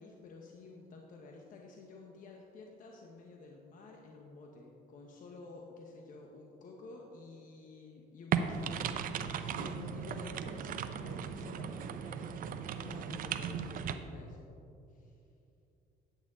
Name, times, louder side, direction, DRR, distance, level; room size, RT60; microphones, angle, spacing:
voice 1, 0.0-14.5 14.9-15.2, left 3 dB, 55° left, 1 dB, 0.9 m, -51 dB
sound 1, 8.3-13.9, right 7 dB, 55° right, 0.5 m, -37 dB
9.0 x 8.3 x 3.6 m, 2.7 s
cardioid pair, 110°, 17 cm